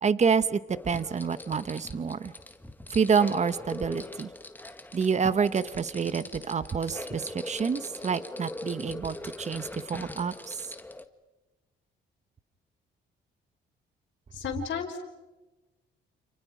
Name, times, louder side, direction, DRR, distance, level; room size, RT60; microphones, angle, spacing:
voice 1, 0.0-2.3 2.9-4.3 4.9-10.6, right 6 dB, 35° right, 14 dB, 1.1 m, -28 dB
sound 1, 0.7-11.0, left 1 dB, 10° left, 1.6 m, -41 dB
voice 2, 14.3-15.0, left 6 dB, 65° left, -2 dB, 3.8 m, -33 dB
29.5 x 28.5 x 5.1 m, 1.1 s
cardioid pair, 90°, 20 cm